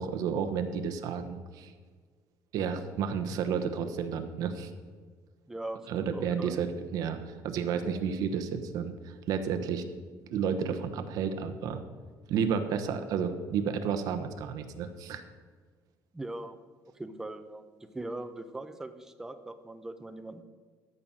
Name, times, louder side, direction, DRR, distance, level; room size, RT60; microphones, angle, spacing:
voice 1, 0.0-1.7 2.5-4.7 5.9-9.8 10.3-11.8 12.3-15.2, right 6 dB, 60° right, 8 dB, 1.0 m, -31 dB
voice 2, 5.5-6.6 16.1-16.6 16.9-17.7 17.9-20.4, right 2 dB, 5° right, 9 dB, 0.6 m, -40 dB
13.5 x 5.6 x 7.5 m, 1.5 s
cardioid pair, 175°, 7 cm